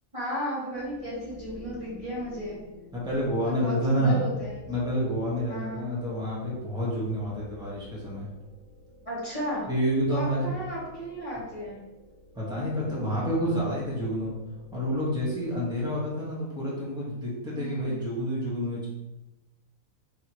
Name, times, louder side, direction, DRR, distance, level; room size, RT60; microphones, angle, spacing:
voice 1, 0.1-2.6 3.4-4.6 5.5-5.9 9.0-9.6 10.1-11.8 17.5-18.0, equal, 25° right, -10 dB, 1.2 m, -34 dB
sound 1, 0.7-16.5, left 1 dB, 70° right, 1.8 m, -51 dB
voice 2, 2.9-4.3 4.7-8.3 9.7-10.5 12.3-14.3 14.7-18.9, equal, 5° right, -7 dB, 1.3 m, -28 dB
4.7 x 3.4 x 3.0 m, 1.0 s
omnidirectional pair, 1.5 m